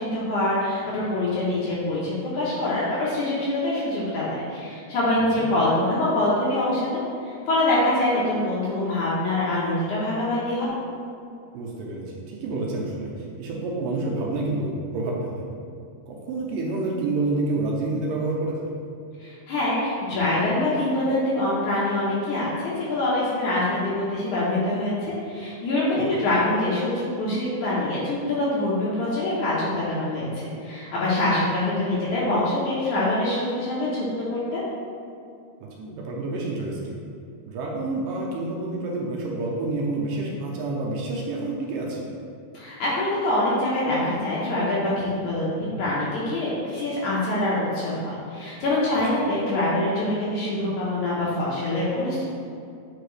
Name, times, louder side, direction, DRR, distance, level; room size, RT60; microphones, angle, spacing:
voice 1, 0.0-10.7 19.2-34.6 42.5-45.5 45.8-52.2, left 1 dB, 70° left, -7 dB, 2.0 m, -25 dB
voice 2, 11.5-15.5 16.1-18.6 25.9-26.1 35.6-37.0 37.5-42.1, right 2 dB, 75° right, -2 dB, 2.1 m, -28 dB
8.2 x 4.9 x 3.2 m, 2.5 s
omnidirectional pair, 4.5 m